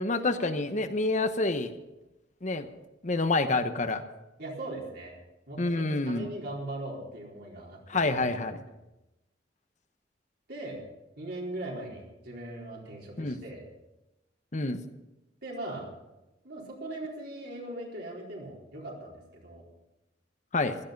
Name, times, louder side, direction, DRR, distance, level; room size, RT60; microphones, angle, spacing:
voice 1, 0.0-1.7 2.4-2.7 3.0-4.0 5.6-6.3 7.9-8.6 13.2-13.4 14.5-14.8 20.5-20.8, left 2 dB, 40° left, 9 dB, 0.9 m, -28 dB
voice 2, 4.4-5.1 5.5-5.7 6.0-8.1 10.5-10.8 11.2-13.6 15.4-15.9 16.4-19.6, right 1 dB, 60° right, -2 dB, 4.2 m, -39 dB
16.5 x 13.0 x 5.3 m, 0.98 s
head